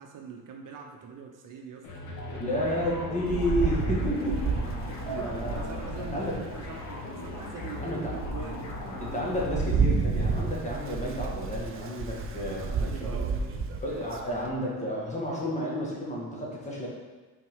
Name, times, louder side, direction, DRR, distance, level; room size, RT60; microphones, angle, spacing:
voice 1, 0.0-1.9 2.3-2.6 3.9-9.4 12.3-13.7, right 5 dB, 60° right, 2 dB, 0.8 m, -44 dB
sound 1, 1.8-10.1, left 2 dB, 50° left, 1.1 m, -38 dB
voice 2, 2.4-4.5 5.0-6.4 7.8-8.1 9.0-12.7 13.0-13.2 13.8-16.9, equal, 20° left, -4 dB, 1.5 m, -31 dB
Rain, 3.3-6.8 7.3-7.4 7.9-14.5, right 4 dB, 35° right, 0.5 m, -31 dB
5.8 x 4.5 x 3.6 m, 1.2 s
cardioid pair, 135°, 37 cm